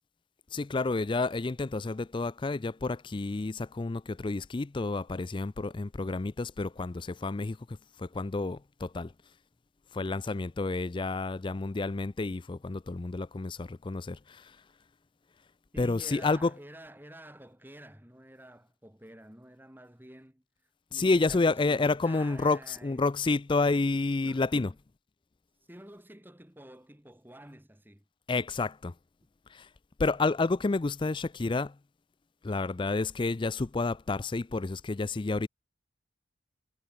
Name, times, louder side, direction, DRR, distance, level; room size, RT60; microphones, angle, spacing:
voice 1, 0.5-9.1 9.9-14.6 15.8-16.5 20.9-24.7 28.3-28.9 29.5-29.7 30.0-31.8 32.4-35.5, left 3 dB, 25° left, 0.4 m, -30 dB
voice 2, 15.7-20.4 20.9-23.1 24.2-24.7 25.7-28.0 32.5-32.6, right 1 dB, 10° right, 2.3 m, -50 dB
head